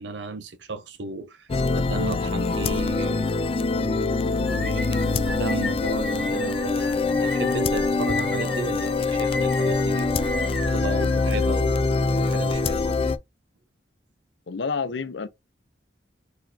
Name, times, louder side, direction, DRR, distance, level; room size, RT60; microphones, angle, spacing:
voice 1, 0.0-1.5 1.7-3.3 3.7-10.5 10.7-13.2, right 3 dB, 90° right, 0.7 m, -34 dB
sound 1, 1.5-13.2, left 3 dB, 30° left, 0.3 m, -24 dB
sound 2, 4.4-11.8, left 2 dB, 5° left, 1.1 m, -36 dB
voice 2, 14.5-15.3, left 5 dB, 75° left, 0.6 m, -29 dB
4.0 x 3.2 x 2.7 m
head